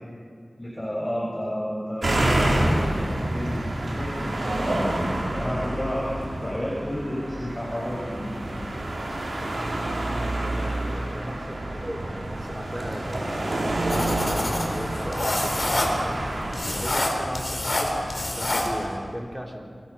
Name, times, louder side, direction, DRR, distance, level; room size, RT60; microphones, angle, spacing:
voice 1, 0.6-3.0 3.3-3.7 3.9-4.9 5.3-8.6, equal, 20° left, -5 dB, 6.5 m, -31 dB
sound 1, 2.0-17.0, right 1 dB, 80° right, 4.6 m, -28 dB
voice 2, 10.4-14.0 14.6-19.7, equal, 10° right, 0 dB, 3.7 m, -37 dB
sound 2, 13.9-19.0, left 1 dB, 50° left, 4.0 m, -28 dB
27.5 x 23.0 x 5.7 m, 2.1 s
wide cardioid pair, 50°, 0 cm